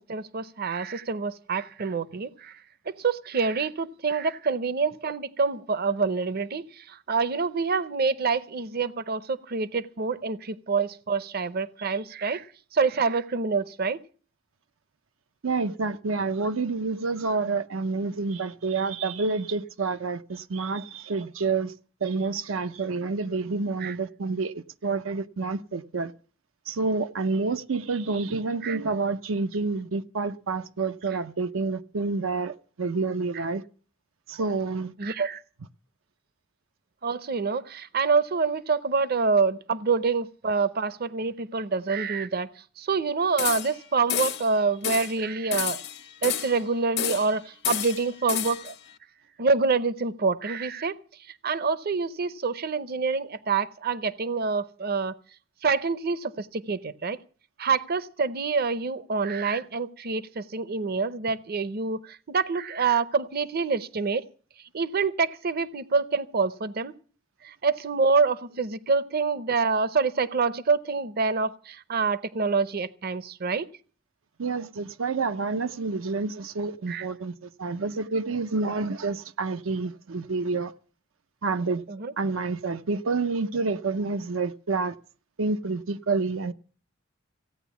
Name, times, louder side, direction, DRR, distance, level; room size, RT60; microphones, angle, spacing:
voice 1, 0.1-2.6 2.9-12.5 12.7-14.0 23.8-23.9 28.6-28.8 35.0-35.4 37.0-42.5 42.8-45.8 46.2-48.7 49.4-51.0 51.4-55.1 55.6-57.2 57.6-64.2 64.7-66.9 67.4-73.7 76.9-77.1 81.9-82.1, right 4 dB, 50° right, 0.7 m, -26 dB
voice 2, 15.4-21.7 22.0-26.1 26.7-33.6 34.3-34.9 74.4-80.7 81.4-81.8 82.2-85.0 85.4-86.5, right 4 dB, 90° right, 0.6 m, -28 dB
sound 1, 43.4-43.8 44.1-44.5 44.8-45.2 45.5-46.6 47.0-47.4 47.6-48.7, left 11 dB, 60° left, 1.0 m, -30 dB
16.0 x 9.2 x 7.1 m
head